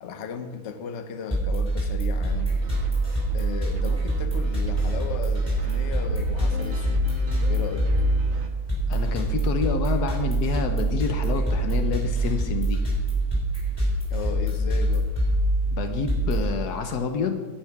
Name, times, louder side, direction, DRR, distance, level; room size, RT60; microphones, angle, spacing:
voice 1, 0.0-2.6 3.3-7.1 7.4-7.9 14.1-15.1, left 6 dB, 55° left, 9 dB, 1.0 m, -36 dB
sound 1, 1.3-16.5, right 1 dB, 15° left, 4.3 m, -25 dB
sound 2, 2.2-8.5, equal, 50° right, 1.3 m, -36 dB
voice 2, 8.9-12.8 15.7-17.4, left 5 dB, 85° left, 6 dB, 1.4 m, -28 dB
10.5 x 8.7 x 5.9 m, 1.3 s
omnidirectional pair, 1.7 m